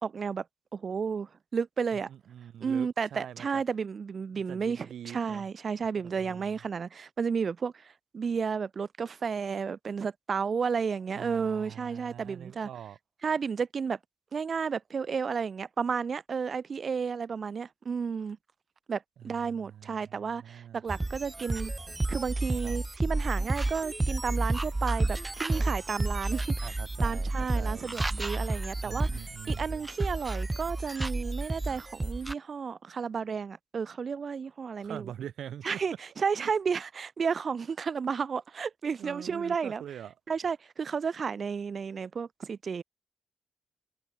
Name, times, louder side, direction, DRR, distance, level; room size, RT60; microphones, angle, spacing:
voice 1, 0.0-0.4 0.7-2.1 2.6-12.7 13.2-14.0 14.3-18.4 18.9-21.7 22.1-35.1 35.6-39.8 40.3-42.8, right 6 dB, 40° right, 0.8 m, -32 dB
voice 2, 1.9-3.6 4.3-5.5 6.0-6.6 11.1-13.0 19.2-20.8 22.6-22.8 26.6-28.0 28.8-29.9 34.8-35.7 36.4-36.5 39.0-40.1, right 10 dB, 85° right, 1.5 m, -44 dB
sound 1, 20.9-32.3, right 2 dB, 15° right, 0.4 m, -31 dB
open air
wide cardioid pair, 155°, 0 cm